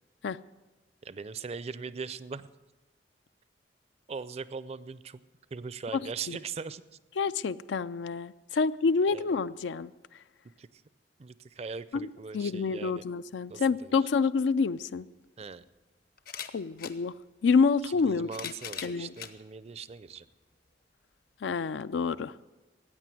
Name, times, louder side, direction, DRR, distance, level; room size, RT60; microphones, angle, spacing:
voice 1, 1.0-2.5 4.1-5.2 5.5-6.8 8.5-8.6 9.1-9.3 10.6-10.8 11.2-13.0 13.5-14.0 15.4-15.7 18.0-20.3, right 5 dB, 35° right, 16 dB, 0.4 m, -40 dB
voice 2, 5.9-6.4 7.2-9.9 11.9-12.1 12.3-15.0 16.5-17.1 17.4-18.5 18.8-19.1 21.4-22.3, left 5 dB, 80° left, 15 dB, 0.4 m, -28 dB
sound 1, 14.8-14.9 16.2-17.0 18.0-19.4 20.1-20.2 21.5-21.6, left 8 dB, 55° left, 0.9 m, -41 dB
15.0 x 9.0 x 7.7 m, 1.2 s
head